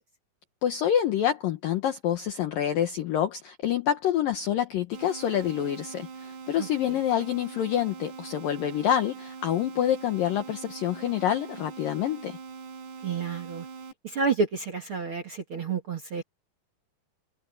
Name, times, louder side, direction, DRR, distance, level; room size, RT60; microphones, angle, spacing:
voice 1, 0.6-12.4, left 10 dB, 65° left, 2.4 m, -27 dB
sound 1, 4.9-13.9, right 5 dB, 70° right, 6.1 m, -42 dB
voice 2, 13.0-13.7 14.0-16.2, right 5 dB, 45° right, 1.7 m, -29 dB
open air
omnidirectional pair, 5.2 m